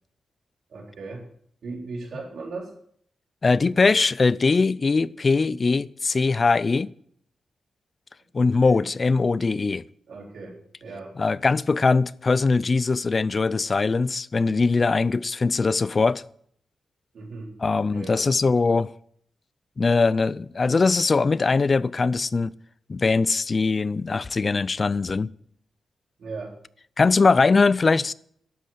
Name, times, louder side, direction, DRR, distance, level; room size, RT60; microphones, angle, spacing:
voice 1, 0.7-1.2 1.6-2.8 8.6-8.9 10.1-11.2 17.1-18.3 26.2-26.6, right 3 dB, 75° right, 3.8 m, -38 dB
voice 2, 3.4-6.9 8.3-9.8 11.2-16.2 17.6-18.9 19.8-22.5 22.9-25.3 27.0-28.1, left 4 dB, 40° left, 0.4 m, -21 dB
12.0 x 8.5 x 7.4 m
cardioid pair, 100°, 0 cm